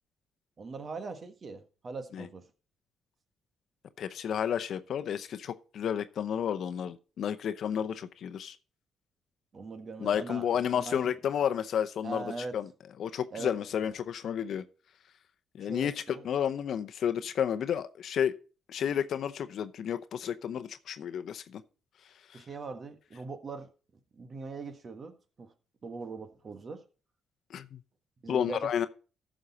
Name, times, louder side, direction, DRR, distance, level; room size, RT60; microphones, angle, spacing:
voice 1, 0.6-2.5 9.5-11.1 12.0-12.6 13.3-13.6 15.6-16.2 22.3-23.7 24.1-25.5 25.8-26.8 28.2-28.9, right 3 dB, 40° right, 1.5 m, -41 dB
voice 2, 4.0-8.6 10.0-12.7 13.0-14.6 15.5-18.3 18.7-21.6 22.3-22.4 27.5-27.8 28.3-28.9, left 8 dB, 65° left, 0.8 m, -31 dB
14.5 x 6.4 x 4.1 m
cardioid pair, 90°, 0 cm